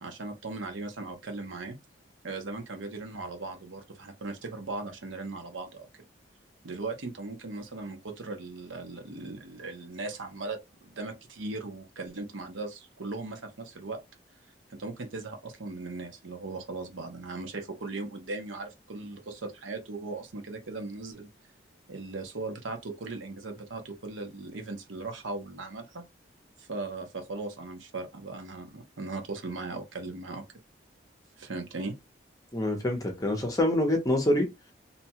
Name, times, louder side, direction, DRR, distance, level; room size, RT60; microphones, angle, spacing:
voice 1, 0.0-1.8 2.2-6.0 6.6-14.0 14.7-21.3 21.9-26.0 26.6-30.4 31.4-31.9, right 3 dB, 85° right, 0.8 m, -38 dB
voice 2, 32.5-34.5, left 1 dB, 20° left, 0.7 m, -26 dB
2.7 x 2.3 x 2.8 m
head